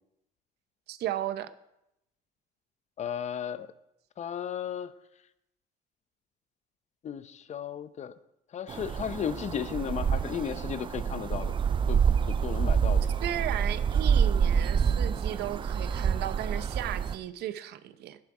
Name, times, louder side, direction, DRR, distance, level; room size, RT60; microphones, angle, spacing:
voice 1, 0.9-1.5 13.2-18.2, right 12 dB, 75° right, 12 dB, 0.7 m, -35 dB
voice 2, 3.0-3.7 4.2-4.9 7.0-7.2 7.5-8.1 8.5-11.6 11.9-12.0 12.3-13.1, left 8 dB, 45° left, 14 dB, 0.7 m, -34 dB
sound 1, 8.7-17.2, right 7 dB, 30° right, 0.4 m, -27 dB
11.0 x 10.5 x 4.8 m, 0.84 s
cardioid pair, 110°, 17 cm